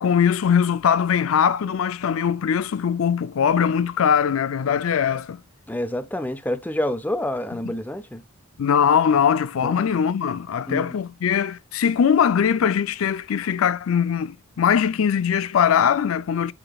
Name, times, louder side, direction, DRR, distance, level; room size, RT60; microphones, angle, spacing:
voice 1, 0.0-5.4 8.6-16.5, left 7 dB, 70° left, 0.4 m, -21 dB
voice 2, 5.7-8.2 9.6-9.8 10.7-11.0, left 1 dB, 10° left, 0.6 m, -28 dB
7.8 x 5.9 x 2.3 m
head